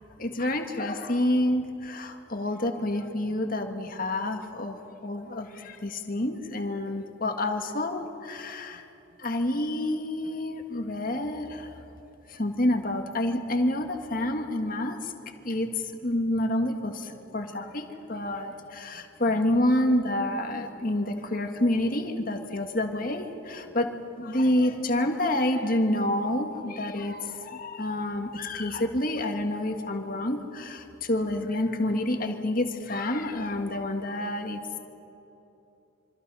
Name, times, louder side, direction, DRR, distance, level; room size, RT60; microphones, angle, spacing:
voice 1, 0.2-8.8 9.2-11.7 12.3-15.1 15.4-15.7 16.0-23.9 24.2-34.6, left 1 dB, 40° left, 5 dB, 1.7 m, -28 dB
27.0 x 24.5 x 5.5 m, 3.0 s
head